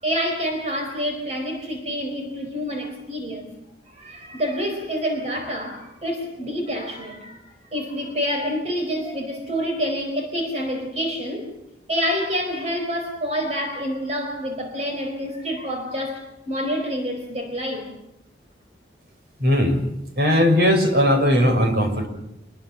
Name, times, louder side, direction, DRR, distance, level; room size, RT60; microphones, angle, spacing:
voice 1, 0.0-3.5 3.9-7.4 7.7-11.5 11.9-18.0, equal, 35° right, 3 dB, 4.4 m, -27 dB
voice 2, 19.4-19.8 20.2-22.1, equal, 55° right, 5 dB, 6.3 m, -18 dB
27.0 x 22.5 x 7.2 m, 0.83 s
head